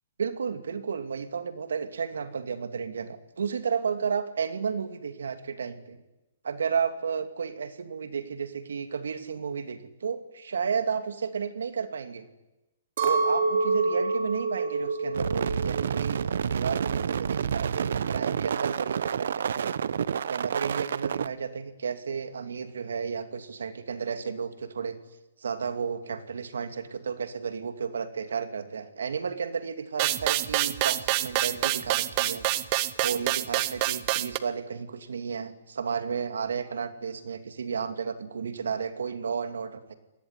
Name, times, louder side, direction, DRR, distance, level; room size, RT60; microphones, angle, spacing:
voice 1, 0.2-6.0 6.4-12.2 13.0-19.7 20.3-25.0 25.4-32.4 33.0-39.9, right 6 dB, 90° right, 9 dB, 2.7 m, -32 dB
Chink clink, 13.0-17.3 17.6-18.4, right 3 dB, 50° right, 4.0 m, -29 dB
sound 1, 15.1-21.3, right 7 dB, 65° right, 0.8 m, -29 dB
sound 2, 30.0-34.4, right 17 dB, 30° right, 0.9 m, -26 dB
27.5 x 19.0 x 9.8 m, 0.99 s
hypercardioid pair, 165°, 0 cm